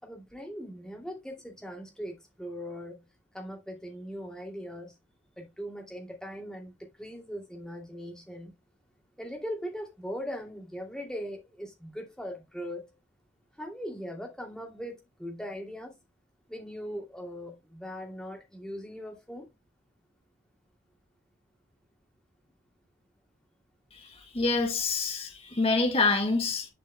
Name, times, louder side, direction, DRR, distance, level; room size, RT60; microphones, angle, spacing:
voice 1, 0.0-3.1 3.3-5.0 5.4-8.5 9.2-12.9 13.6-16.0 16.5-19.5, equal, 5° left, 2.7 m, -40 dB
voice 2, 24.3-26.7, left 3 dB, 30° left, 1.7 m, -26 dB
11.5 x 5.5 x 2.2 m
head